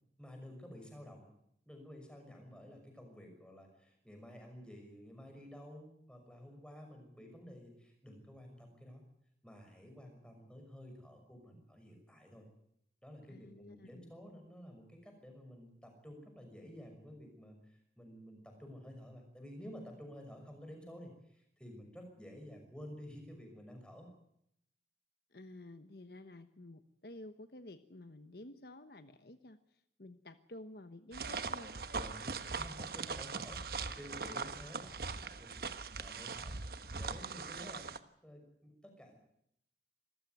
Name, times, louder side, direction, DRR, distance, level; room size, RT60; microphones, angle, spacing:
voice 1, 0.2-1.3 1.7-9.0 9.4-12.5 13.0-24.1 31.9-35.6 36.0-37.9 38.2-39.2, equal, 5° left, 3 dB, 5.9 m, -52 dB
voice 2, 13.3-14.1 25.3-31.7, left 1 dB, 60° left, 10 dB, 1.1 m, -52 dB
sound 1, 31.1-38.0, right 4 dB, 55° right, 1.2 m, -41 dB
26.0 x 14.5 x 9.3 m, 0.75 s
head